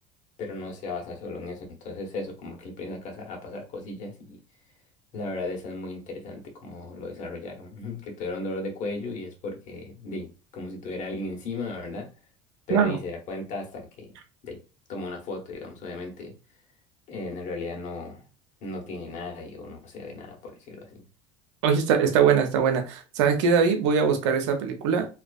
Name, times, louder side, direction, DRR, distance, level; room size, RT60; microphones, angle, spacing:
voice 1, 0.4-4.4 5.1-12.1 12.7-14.1 14.4-14.6 14.9-16.3 17.1-18.3 18.6-21.0, left 2 dB, 55° left, 1.1 m, -36 dB
voice 2, 21.6-25.1, right 6 dB, 80° right, 0.7 m, -22 dB
2.4 x 2.3 x 2.3 m
supercardioid pair, 90°, 16 cm